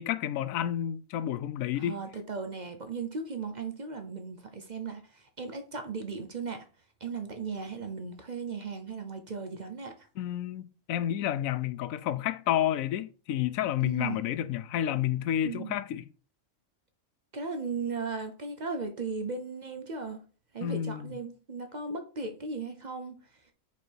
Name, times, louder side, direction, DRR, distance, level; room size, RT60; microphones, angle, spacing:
voice 1, 0.0-2.0 10.2-16.1 20.6-21.2, left 11 dB, 75° left, 1.0 m, -30 dB
voice 2, 1.8-6.7 7.0-10.1 13.8-14.2 15.4-15.7 17.3-20.2 20.5-23.2, right 4 dB, 40° right, 0.7 m, -37 dB
5.4 x 4.6 x 4.5 m
omnidirectional pair, 1.4 m